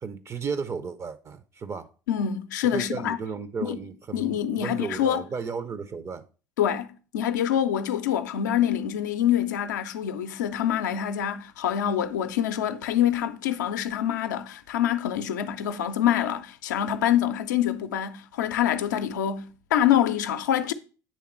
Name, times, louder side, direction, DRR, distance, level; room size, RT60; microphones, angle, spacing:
voice 1, 0.0-1.9 2.6-6.3, right 5 dB, 25° right, 0.4 m, -34 dB
voice 2, 2.1-3.2 3.6-3.8 4.1-5.2 6.6-20.7, left 10 dB, 70° left, 0.4 m, -25 dB
8.4 x 3.5 x 4.2 m
figure-of-eight pair, 65°, 10 cm